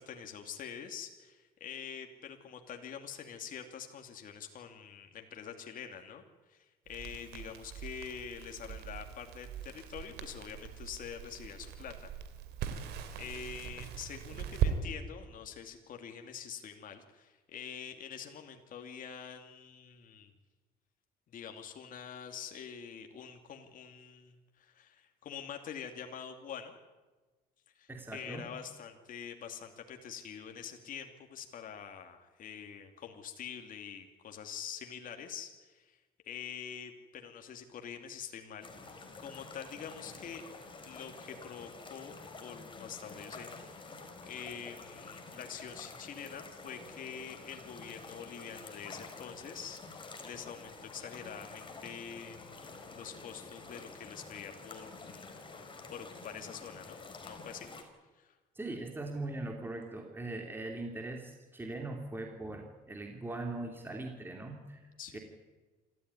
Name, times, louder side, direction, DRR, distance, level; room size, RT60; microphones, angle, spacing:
voice 1, 0.0-12.1 12.6-12.8 13.2-20.3 21.3-26.8 27.7-36.0 36.2-40.5 40.8-42.1 42.4-43.8 44.2-52.6 52.9-55.3 55.6-57.7 58.1-58.4 65.0-65.2, left 7 dB, 55° left, 4 dB, 2.5 m, -46 dB
Crackle, 6.9-14.7, right 9 dB, 80° right, 3.2 m, -39 dB
voice 2, 27.9-28.5 58.5-65.2, right 2 dB, 10° right, 2 dB, 3.0 m, -40 dB
sound 1, 38.6-57.8, left 3 dB, 30° left, 4.5 m, -49 dB
26.5 x 14.5 x 9.7 m, 1.2 s
cardioid pair, 110°, 17 cm